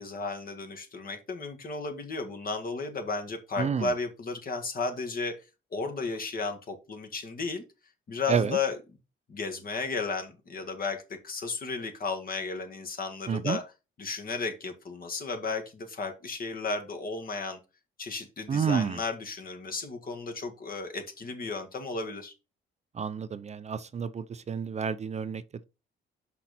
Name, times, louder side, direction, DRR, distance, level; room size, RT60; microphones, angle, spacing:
voice 1, 0.0-5.4 5.7-7.6 8.1-8.8 9.3-13.6 14.0-17.6 18.0-22.3, left 4 dB, 45° left, 1.8 m, -34 dB
voice 2, 3.6-3.9 8.3-8.6 13.3-13.6 18.5-19.0 22.9-25.6, right 6 dB, 35° right, 0.5 m, -29 dB
5.8 x 5.3 x 4.2 m
cardioid pair, 90°, 20 cm